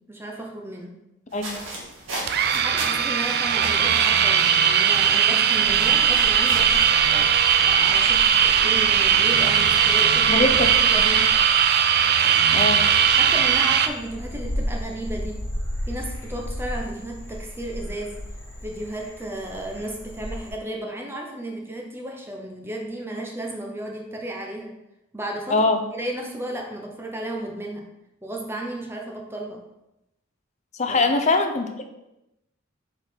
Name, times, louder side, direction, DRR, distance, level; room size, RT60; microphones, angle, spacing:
voice 1, 0.1-0.9 2.5-7.3 7.6-10.4 10.9-11.3 13.1-15.4 15.9-18.2 18.6-24.7 25.1-27.8 28.2-29.6 30.9-31.0, right 1 dB, 10° right, 0 dB, 0.7 m, -34 dB
sound 1, 1.3-7.7, right 2 dB, 70° right, 1.7 m, -37 dB
sound 2, 2.3-13.9, right 8 dB, 50° right, 0.4 m, -19 dB
Frog, 5.6-20.5, equal, 15° left, 2.0 m, -35 dB
voice 2, 10.3-11.0 12.5-12.8 25.5-25.8 30.8-31.9, left 2 dB, 35° left, 6 dB, 0.5 m, -22 dB
6.2 x 4.4 x 4.4 m, 0.91 s
head